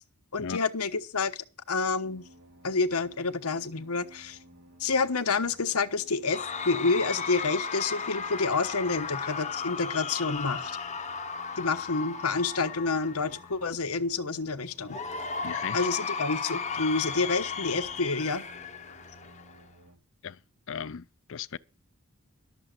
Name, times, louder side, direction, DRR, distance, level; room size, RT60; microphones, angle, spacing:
voice 1, 0.3-2.2 2.6-4.4 4.8-10.8 11.6-15.0 15.7-18.4, left 4 dB, 85° left, 1.1 m, -28 dB
sound 1, 2.0-20.0, right 1 dB, 65° right, 2.6 m, -56 dB
Cheering / Crowd, 6.3-13.6 14.9-19.6, left 5 dB, 30° left, 0.9 m, -35 dB
voice 2, 15.4-15.9 20.2-20.4 20.7-21.6, left 7 dB, 60° left, 0.5 m, -37 dB
12.5 x 7.1 x 6.6 m
head